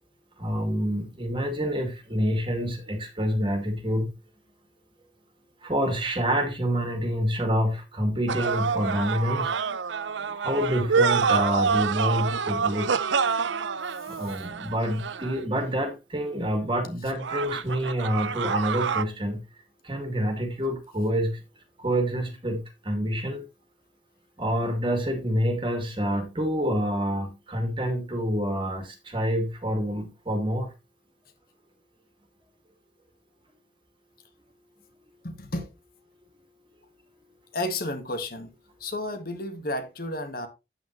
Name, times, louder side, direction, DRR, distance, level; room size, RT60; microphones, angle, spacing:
voice 1, 0.4-4.1 5.6-9.5 10.3-13.1 14.1-19.4 19.8-21.4 21.8-23.4 24.4-30.7, equal, 25° right, 2.3 m, -27 dB
sound 1, 8.3-15.6 17.2-19.0, right 5 dB, 80° right, 0.6 m, -27 dB
voice 2, 35.2-35.7 37.5-38.5 38.8-40.5, left 1 dB, 50° left, 1.7 m, -32 dB
9.4 x 8.6 x 3.1 m
head